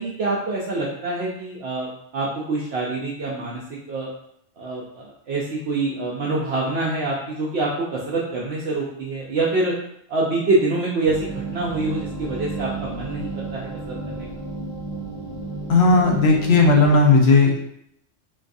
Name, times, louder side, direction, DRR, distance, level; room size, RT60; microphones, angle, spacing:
voice 1, 0.0-3.6 3.9-4.1 4.6-9.7 10.1-14.3, right 2 dB, 65° right, -4 dB, 0.8 m, -25 dB
sound 1, 11.0-16.9, right 3 dB, 20° right, 0.8 m, -32 dB
voice 2, 15.7-17.7, left 3 dB, 60° left, 0 dB, 0.9 m, -15 dB
3.9 x 2.4 x 2.5 m, 0.74 s
omnidirectional pair, 1.3 m